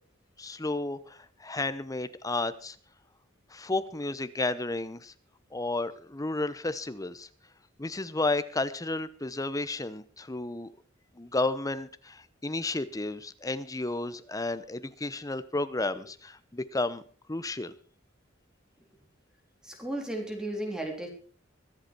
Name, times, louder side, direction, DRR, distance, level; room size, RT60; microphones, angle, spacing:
voice 1, 0.4-2.8 3.5-5.1 5.5-7.3 7.8-10.7 11.2-17.0 17.3-17.7, left 2 dB, 20° left, 13 dB, 0.9 m, -32 dB
voice 2, 19.6-21.1, right 1 dB, 5° right, 1 dB, 3.5 m, -34 dB
24.5 x 8.1 x 4.5 m, 0.42 s
head